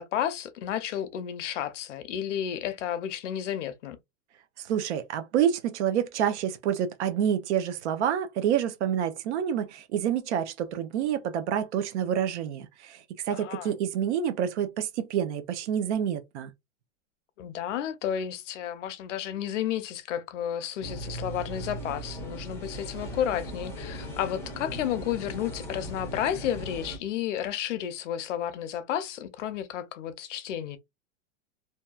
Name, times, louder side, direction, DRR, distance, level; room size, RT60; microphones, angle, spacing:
voice 1, 0.0-4.0 13.3-13.8 17.4-30.8, left 10 dB, 85° left, 0.6 m, -32 dB
voice 2, 4.6-16.5, right 9 dB, 70° right, 0.6 m, -28 dB
sound 1, 20.8-27.0, equal, 5° left, 0.5 m, -38 dB
2.7 x 2.2 x 2.3 m
supercardioid pair, 145°, 36 cm